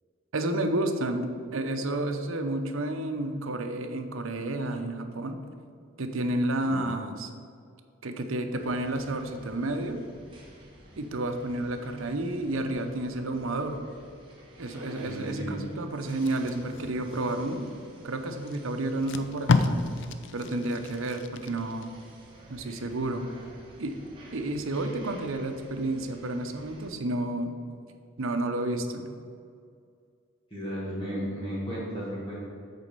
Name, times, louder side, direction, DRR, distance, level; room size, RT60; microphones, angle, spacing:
voice 1, 0.3-5.4 6.0-7.3 8.0-10.0 11.0-13.8 14.6-17.7 18.0-19.9 20.3-22.0 22.5-23.3 23.8-24.0 24.3-27.5 28.2-29.1, right 1 dB, 80° right, 6 dB, 0.7 m, -31 dB
voice 2, 6.6-6.9 15.0-15.5 30.5-32.4, equal, 25° left, -10 dB, 1.8 m, -34 dB
sound 1, 8.6-26.9, right 1 dB, 25° right, 1.3 m, -51 dB
Packing tape duct tape, 16.1-17.8 18.5-18.6 18.9-21.9 22.3-22.5, left 3 dB, 60° left, 0.5 m, -30 dB
8.2 x 4.2 x 6.8 m, 2.3 s
head